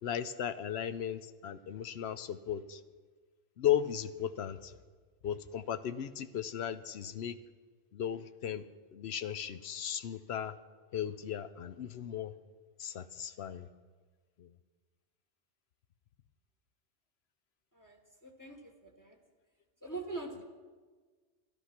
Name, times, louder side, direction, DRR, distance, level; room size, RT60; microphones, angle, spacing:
voice 1, 0.0-2.8 3.6-4.7 5.2-7.4 7.9-8.6 8.9-10.5 10.9-12.3 12.8-13.7 14.4-14.5, left 10 dB, 65° left, 12 dB, 0.8 m, -36 dB
voice 2, 17.7-19.2 19.8-20.4, right 3 dB, 15° left, 3 dB, 1.2 m, -43 dB
12.5 x 11.5 x 5.9 m, 1.4 s
omnidirectional pair, 1.3 m